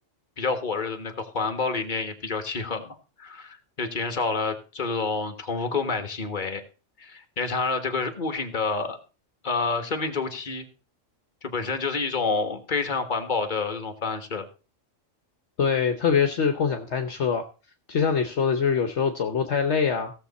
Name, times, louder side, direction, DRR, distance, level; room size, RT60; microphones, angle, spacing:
voice 1, 0.4-6.6 7.0-9.0 9.4-10.7 11.4-14.5, left 4 dB, 40° left, 6 dB, 1.6 m, -28 dB
voice 2, 15.6-17.4 17.9-20.1, left 6 dB, 65° left, 6 dB, 1.3 m, -24 dB
16.5 x 7.1 x 4.2 m, 0.34 s
omnidirectional pair, 1.3 m